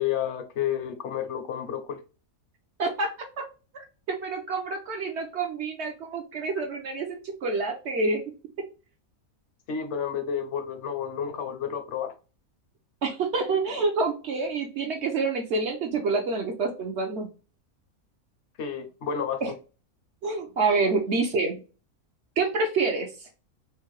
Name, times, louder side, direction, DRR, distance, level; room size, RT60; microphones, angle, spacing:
voice 1, 0.0-2.0 9.7-12.1 18.6-19.4, left 8 dB, 60° left, 0.9 m, -30 dB
voice 2, 2.8-3.4 3.7-8.2 13.0-17.3 19.4-19.5 20.2-21.6 22.4-23.3, right 3 dB, 60° right, 0.8 m, -27 dB
4.5 x 2.1 x 3.0 m
omnidirectional pair, 1.5 m